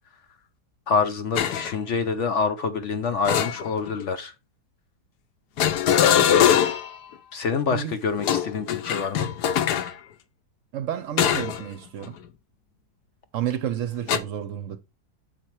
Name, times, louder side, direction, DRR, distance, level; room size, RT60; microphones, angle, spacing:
voice 1, 0.9-4.3 7.3-9.3, left 5 dB, 60° left, 0.8 m, -26 dB
sound 1, 1.4-1.7 3.3-4.0 5.6-7.0 8.2-9.9 11.2-11.6 12.0-12.3 14.1-14.2, left 9 dB, 85° left, 1.3 m, -22 dB
voice 2, 7.7-8.0 10.7-12.2 13.3-14.8, right 10 dB, 65° right, 0.9 m, -30 dB
7.7 x 4.4 x 4.5 m
omnidirectional pair, 1.7 m